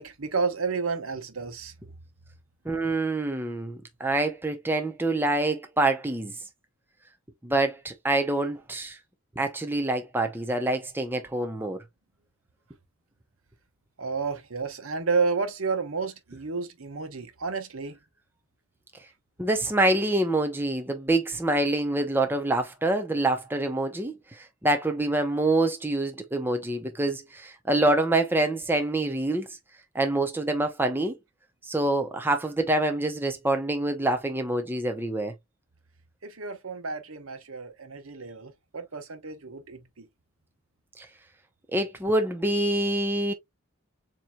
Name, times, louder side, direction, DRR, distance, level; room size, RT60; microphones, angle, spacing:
voice 1, 0.0-1.7 14.0-18.0 36.2-40.1, right 4 dB, 70° right, 1.1 m, -31 dB
voice 2, 2.7-6.3 7.4-9.0 9.4-11.8 19.4-29.5 29.9-31.1 31.7-35.3 41.0-41.1 41.7-43.3, right 2 dB, 10° right, 0.7 m, -26 dB
7.3 x 2.9 x 2.3 m
head